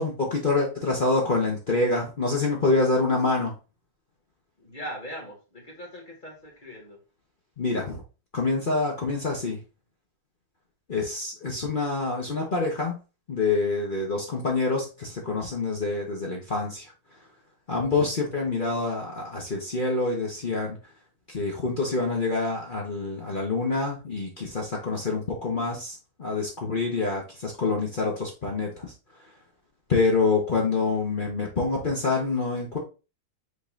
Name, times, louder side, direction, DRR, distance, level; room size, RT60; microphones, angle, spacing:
voice 1, 0.0-3.5 7.6-8.0 8.3-9.6 10.9-13.0 13.3-16.9 17.7-20.8 21.3-28.9 29.9-32.8, left 3 dB, 45° left, -1 dB, 0.7 m, -26 dB
voice 2, 4.6-7.0, equal, 25° left, -1 dB, 1.6 m, -40 dB
5.3 x 2.7 x 3.8 m, 0.31 s
omnidirectional pair, 2.2 m